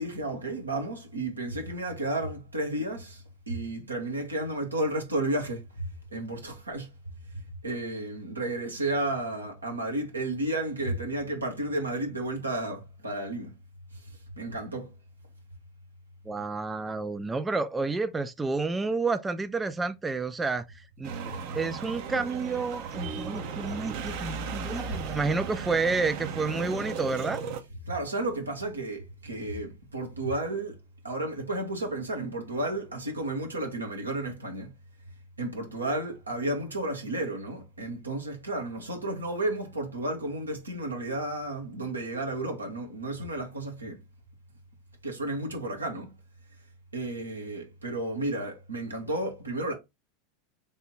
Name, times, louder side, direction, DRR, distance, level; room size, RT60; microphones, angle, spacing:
voice 1, 0.0-6.9 7.3-13.5 13.9-14.9 23.6-23.8 24.1-24.2 24.9-25.0 27.9-30.8 31.0-34.7 35.4-44.0 45.0-46.1 46.9-49.7, right 1 dB, 85° right, 1.2 m, -32 dB
voice 2, 16.3-27.4, right 3 dB, 15° right, 0.4 m, -30 dB
sound 1, 21.0-27.6, right 6 dB, 55° right, 0.7 m, -36 dB
3.4 x 2.8 x 4.2 m
figure-of-eight pair, 85°, 0 cm